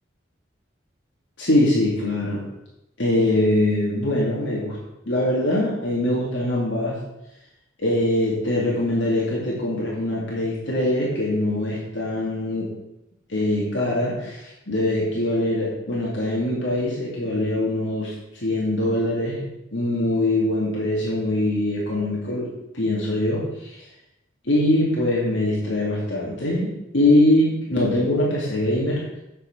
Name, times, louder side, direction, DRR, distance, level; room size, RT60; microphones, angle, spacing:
voice 1, 1.4-2.4 3.0-4.8 5.1-7.0 7.8-12.7 13.3-19.4 19.7-23.8 24.4-26.7 26.9-29.0, left 1 dB, 65° left, -5 dB, 2.6 m, -23 dB
8.2 x 6.5 x 6.3 m, 0.91 s
head